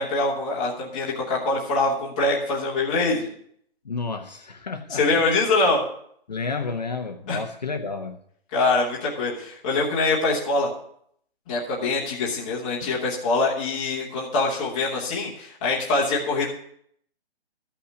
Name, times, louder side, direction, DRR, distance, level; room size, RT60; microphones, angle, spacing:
voice 1, 0.0-3.3 4.9-5.8 7.3-7.4 8.5-10.7 11.5-16.5, left 3 dB, 5° left, -7 dB, 1.1 m, -24 dB
voice 2, 3.8-5.2 6.3-8.2 12.8-12.9, left 4 dB, 40° left, 5 dB, 0.9 m, -31 dB
14.0 x 5.8 x 7.8 m, 0.66 s
hypercardioid pair, 180°, 32 cm